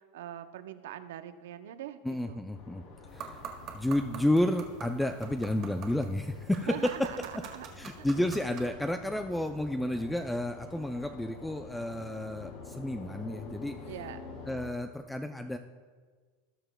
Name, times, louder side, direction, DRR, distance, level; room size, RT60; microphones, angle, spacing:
voice 1, 0.0-2.0 2.3-2.4 6.7-7.7 13.8-14.2, right 11 dB, 80° right, 10 dB, 0.6 m, -42 dB
voice 2, 2.0-2.8 3.1-3.4 3.7-7.1 7.8-13.7 14.5-15.6, left 1 dB, 5° left, 6 dB, 0.4 m, -31 dB
sound 1, 2.5-14.7, left 4 dB, 60° left, 3.1 m, -48 dB
sound 2, 3.1-8.7, right 6 dB, 40° right, 1.7 m, -46 dB
19.0 x 6.8 x 2.2 m, 1.5 s
supercardioid pair, 140°, 0 cm